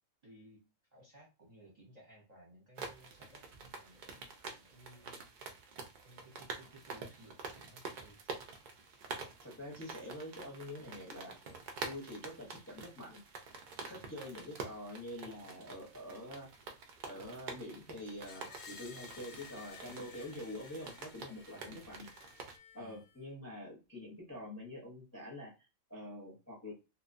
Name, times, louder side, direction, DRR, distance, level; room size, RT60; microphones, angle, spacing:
voice 1, 0.2-0.6 0.9-5.3 6.0-8.2 9.1-9.3 13.9-14.1 21.5-21.9 22.8-23.0, right 1 dB, 40° right, -2 dB, 0.7 m, -59 dB
sound 1, 2.8-22.6, right 4 dB, 85° right, 0.4 m, -48 dB
voice 2, 9.4-11.4 11.8-13.2 13.9-16.5 17.0-22.1 22.7-26.7, left 1 dB, 15° left, -3 dB, 0.5 m, -46 dB
Screech, 18.3-23.2, left 5 dB, 65° left, 0.7 m, -55 dB
2.6 x 2.1 x 2.5 m, 0.28 s
omnidirectional pair, 1.4 m